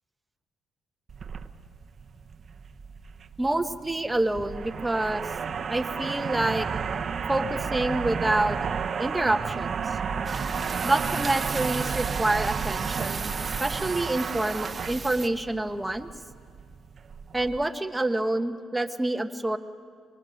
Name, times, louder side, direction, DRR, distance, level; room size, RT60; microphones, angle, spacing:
sound 1, 1.1-17.6, right 6 dB, 50° right, 0.9 m, -32 dB
voice 1, 3.4-5.2 5.7-6.7 7.3-8.6 9.0-10.0 10.8-13.3 13.6-16.1 17.3-19.6, right 2 dB, 10° right, 7 dB, 1.1 m, -27 dB
sound 2, 10.3-15.3, right 4 dB, 30° right, 1.4 m, -36 dB
25.0 x 22.0 x 6.5 m, 2.1 s
cardioid pair, 90°, 0 cm